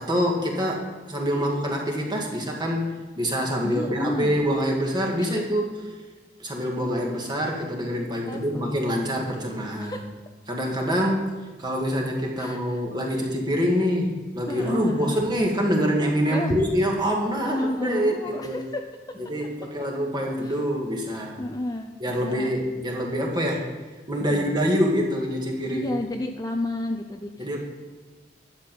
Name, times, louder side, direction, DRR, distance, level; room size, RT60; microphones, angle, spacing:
voice 1, 0.0-5.9 6.4-10.0 10.5-11.3 11.6-18.6 19.2-21.4 22.0-23.7 24.1-26.0 27.4-27.6, equal, 25° right, -1 dB, 1.9 m, -25 dB
voice 2, 3.6-4.4 5.2-5.4 8.3-8.8 9.8-10.0 12.4-12.6 14.5-15.2 16.3-16.6 17.4-18.8 20.4-20.6 21.4-22.5 24.2-24.6 25.7-27.6, left 1 dB, 20° left, 4 dB, 0.5 m, -31 dB
11.5 x 7.5 x 5.3 m, 1.4 s
head